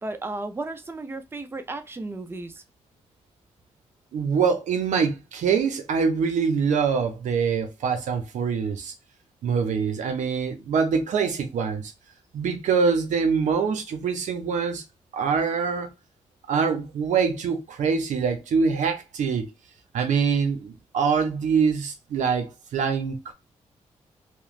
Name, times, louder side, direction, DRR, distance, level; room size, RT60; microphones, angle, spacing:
voice 1, 0.0-2.6, right 2 dB, 20° right, 0.5 m, -34 dB
voice 2, 4.1-8.9 9.4-11.9 12.3-14.8 15.1-15.9 16.5-19.5 19.9-23.3, right 6 dB, 80° right, 0.6 m, -24 dB
3.0 x 2.0 x 2.3 m
cardioid pair, 60°, 12 cm